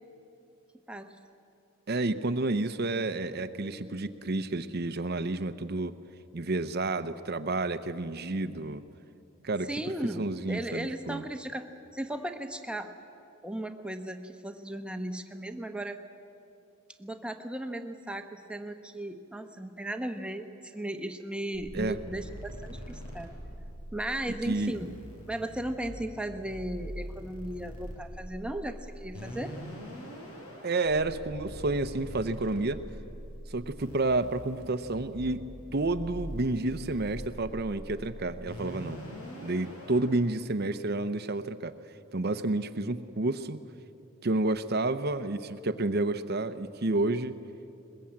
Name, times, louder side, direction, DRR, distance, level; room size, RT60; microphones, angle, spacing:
voice 1, 0.9-1.2 9.7-12.9 13.4-16.0 17.0-23.3 23.9-24.9 25.3-29.6, right 1 dB, 5° right, 6 dB, 0.9 m, -36 dB
voice 2, 1.9-6.0 6.3-8.8 9.4-9.7 10.0-11.2 21.7-22.0 24.5-24.8 30.6-32.8 33.5-35.4 35.7-39.0 39.4-41.8 42.1-43.6 44.2-47.4, right 2 dB, 45° right, 10 dB, 0.7 m, -30 dB
sound 1, 21.5-40.1, equal, 85° left, 5.9 m, -43 dB
21.5 x 21.5 x 8.7 m, 2.7 s
head